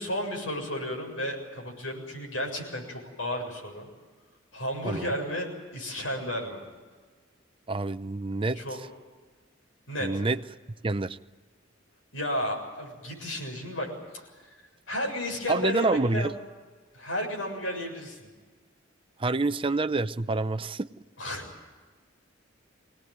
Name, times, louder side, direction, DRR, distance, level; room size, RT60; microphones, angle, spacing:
voice 1, 0.0-3.9 4.5-6.6 8.6-8.8 9.9-10.1 12.1-14.5 14.9-16.3 16.9-18.2 21.2-21.5, left 1 dB, 80° left, 1 dB, 7.2 m, -33 dB
voice 2, 7.7-8.6 10.0-10.4 10.8-11.2 15.5-16.3 19.2-20.9, right 3 dB, 25° right, 12 dB, 0.6 m, -27 dB
24.5 x 18.5 x 9.3 m, 1.4 s
head